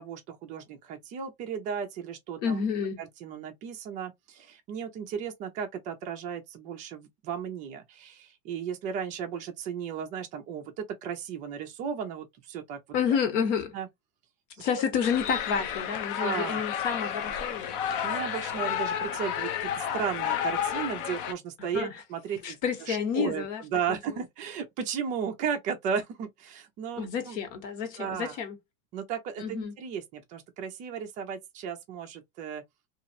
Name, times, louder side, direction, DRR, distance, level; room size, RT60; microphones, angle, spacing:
voice 1, 0.0-2.6 3.0-12.8 13.7-13.9 14.7-14.8 16.2-16.7 18.0-27.4 28.0-28.4 28.9-32.6, right 7 dB, 20° right, 0.4 m, -35 dB
voice 2, 2.4-3.0 12.9-13.7 14.6-17.8 21.7-21.9 22.4-23.6 23.9-24.0 27.0-28.6 29.4-29.7, left 7 dB, 60° left, 1.3 m, -29 dB
sound 1, 15.0-21.3, left 9 dB, 40° left, 0.4 m, -31 dB
2.9 x 2.5 x 2.6 m
supercardioid pair, 160°, 41 cm